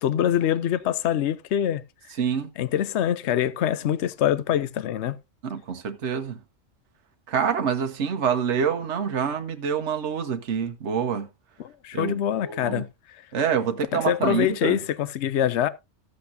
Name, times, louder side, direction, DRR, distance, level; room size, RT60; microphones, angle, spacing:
voice 1, 0.0-1.8 2.6-5.2 11.6-13.2 14.0-15.7, left 10 dB, 65° left, 0.9 m, -24 dB
voice 2, 2.2-2.5 5.4-6.4 7.3-11.3 11.9-12.2 12.4-12.8 13.3-14.8, right 7 dB, 65° right, 1.3 m, -26 dB
14.0 x 8.2 x 2.6 m
omnidirectional pair, 1.3 m